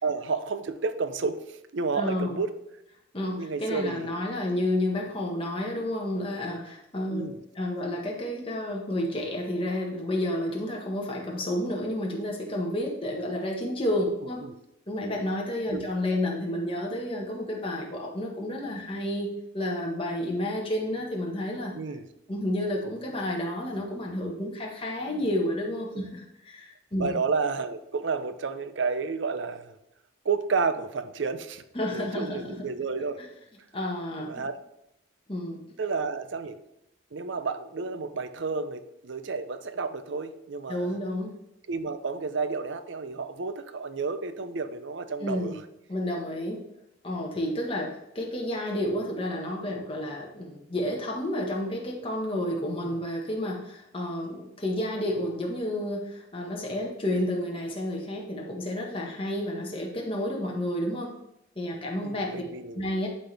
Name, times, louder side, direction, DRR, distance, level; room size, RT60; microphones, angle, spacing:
voice 1, 0.0-2.6 3.3-4.2 7.1-7.4 14.4-14.6 15.7-15.9 21.7-22.1 25.9-26.1 27.0-29.8 30.2-31.6 31.9-33.2 34.2-34.5 35.8-36.6 37.1-41.0 41.7-45.6 52.8-53.0 62.0-62.9, right 4 dB, 70° right, 11 dB, 0.6 m, -31 dB
voice 2, 1.9-2.4 3.1-7.2 7.5-14.4 14.9-21.7 22.3-27.2 31.7-32.5 33.7-34.5 35.3-35.6 40.7-41.3 45.2-45.6 45.9-46.6 47.0-61.2 61.5-62.4 62.7-63.1, left 1 dB, 25° left, -1 dB, 1.4 m, -30 dB
11.5 x 4.1 x 3.4 m, 0.83 s
head